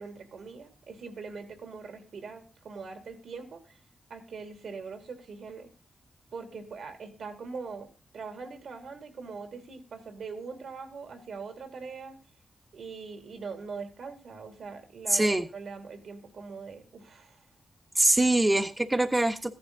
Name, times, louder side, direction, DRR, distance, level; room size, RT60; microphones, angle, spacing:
voice 1, 0.0-3.8 4.1-5.7 6.3-7.9 8.1-12.2 12.7-17.4, right 4 dB, 80° right, 6 dB, 3.0 m, -42 dB
voice 2, 15.1-15.5 18.0-19.5, right 2 dB, 25° right, 6 dB, 1.3 m, -23 dB
14.5 x 11.0 x 4.0 m, 0.34 s
supercardioid pair, 40°, 0 cm